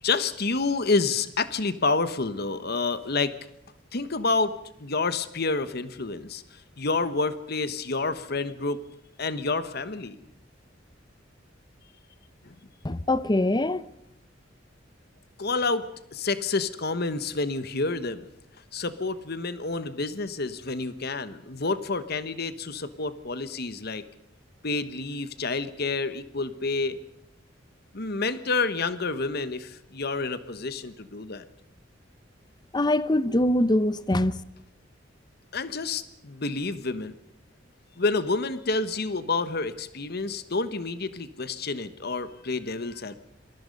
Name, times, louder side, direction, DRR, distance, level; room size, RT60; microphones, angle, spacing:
voice 1, 0.0-3.3 3.9-8.8 9.2-10.2 12.4-12.5 15.4-18.3 18.7-24.0 24.6-27.0 27.9-31.4 35.5-37.1 38.0-43.1, left 3 dB, 55° left, 1.3 m, -29 dB
voice 2, 12.8-13.8 32.7-34.4, left 1 dB, 20° left, 0.8 m, -23 dB
27.5 x 21.5 x 5.4 m
head